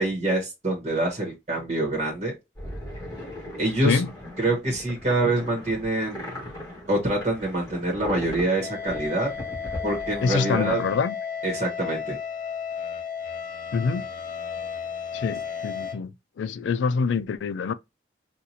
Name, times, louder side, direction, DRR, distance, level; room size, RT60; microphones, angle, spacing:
voice 1, 0.0-2.3 3.6-4.0 4.4-6.3 6.9-9.3 9.8-10.8 11.4-12.2, right 2 dB, 35° right, 1.1 m, -25 dB
sound 1, 2.6-11.0, left 1 dB, 20° left, 1.9 m, -38 dB
sound 2, 8.6-15.9, left 6 dB, 45° left, 0.6 m, -33 dB
voice 2, 10.2-11.1 13.7-14.1 15.1-17.7, left 5 dB, 85° left, 0.3 m, -25 dB
4.3 x 2.4 x 2.6 m
head